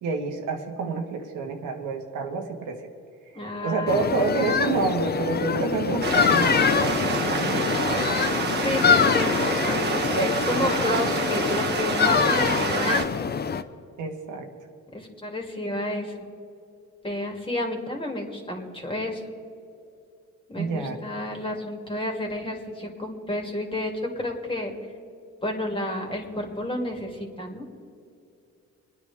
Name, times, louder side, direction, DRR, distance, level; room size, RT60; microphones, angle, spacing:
voice 1, 0.0-2.9 3.6-8.1 10.1-11.0 14.0-14.5 20.6-21.0, right 4 dB, 85° right, 3 dB, 1.6 m, -28 dB
voice 2, 3.3-4.3 8.5-13.3 14.9-16.2 17.0-19.2 20.5-24.7 25.4-27.7, left 1 dB, 15° left, 1 dB, 2.6 m, -31 dB
sound 1, 3.9-13.6, left 6 dB, 35° left, 0.6 m, -24 dB
sound 2, 6.0-13.0, right 4 dB, 35° right, 1.5 m, -28 dB
27.0 x 9.8 x 3.5 m, 2.5 s
cardioid pair, 90°, 30 cm